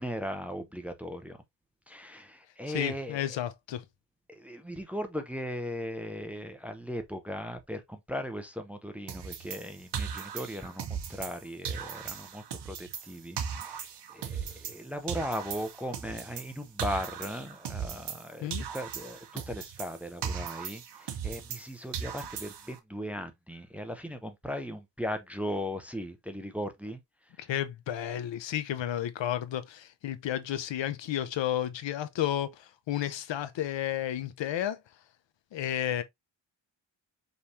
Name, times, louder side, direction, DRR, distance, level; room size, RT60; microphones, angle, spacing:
voice 1, 0.0-1.4 1.9-3.3 4.3-13.9 14.1-27.0 27.4-27.5, equal, 5° right, 0.6 m, -38 dB
voice 2, 2.7-3.8 18.4-18.6 27.4-34.8 35.5-36.0, left 11 dB, 85° left, 0.8 m, -32 dB
sound 1, 9.1-11.4 11.7-14.8 15.1-18.3 18.5-21.7 21.9-22.8, right 7 dB, 65° right, 1.0 m, -38 dB
5.3 x 3.1 x 2.7 m
wide cardioid pair, 170°, 43 cm